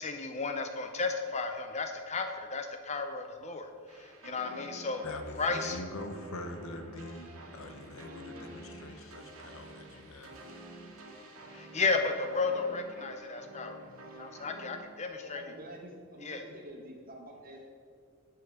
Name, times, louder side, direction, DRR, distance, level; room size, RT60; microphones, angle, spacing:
voice 1, 0.0-5.0 5.4-5.8 11.5-13.8 14.2-15.4 16.2-16.4, left 4 dB, 30° left, 6 dB, 0.5 m, -33 dB
sound 1, 3.9-14.8, right 1 dB, 70° right, 1.8 m, -49 dB
voice 2, 5.0-10.4, left 1 dB, 65° left, 6 dB, 0.9 m, -43 dB
voice 3, 13.9-14.2 15.2-17.7, right 1 dB, 40° right, 1 dB, 1.6 m, -48 dB
8.9 x 5.7 x 7.8 m, 2.3 s
head